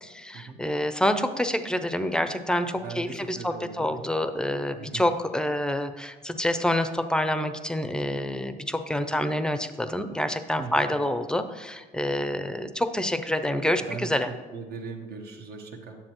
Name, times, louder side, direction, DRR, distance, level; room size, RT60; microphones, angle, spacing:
voice 1, 0.0-14.3, left 1 dB, 5° left, 9 dB, 0.5 m, -27 dB
voice 2, 2.8-4.0 4.7-5.0 10.6-10.9 13.8-14.1 14.5-16.0, right 4 dB, 70° right, 3 dB, 1.2 m, -39 dB
9.8 x 7.3 x 3.0 m, 1.4 s
cardioid pair, 110°, 17 cm